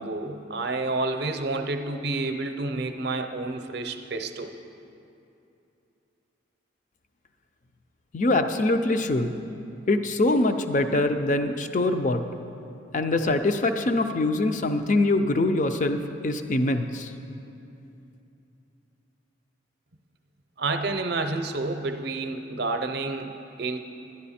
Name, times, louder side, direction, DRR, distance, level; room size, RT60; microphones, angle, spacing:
voice 1, 0.0-4.5 20.6-23.8, right 3 dB, 55° right, 6 dB, 0.6 m, -29 dB
voice 2, 8.1-9.3 9.9-12.2 12.9-17.1, left 2 dB, 40° left, 8 dB, 0.5 m, -23 dB
11.5 x 10.5 x 4.2 m, 2.8 s
head